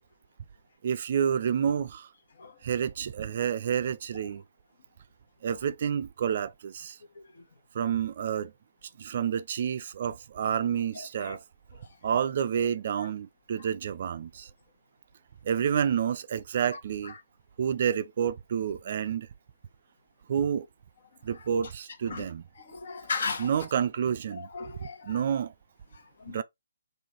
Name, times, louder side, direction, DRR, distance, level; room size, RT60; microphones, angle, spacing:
voice 1, 0.8-2.1 2.6-4.4 5.4-7.0 7.7-8.5 9.0-11.4 12.0-14.5 15.4-17.1 17.6-19.3 20.3-20.7 21.2-22.4 23.4-24.5 24.8-25.5 26.3-26.4, right 8 dB, 45° right, 0.4 m, -29 dB
voice 2, 22.6-23.5 24.4-25.0 26.2-26.4, left 4 dB, 55° left, 1.3 m, -34 dB
3.8 x 2.7 x 4.4 m
figure-of-eight pair, 140°, 0 cm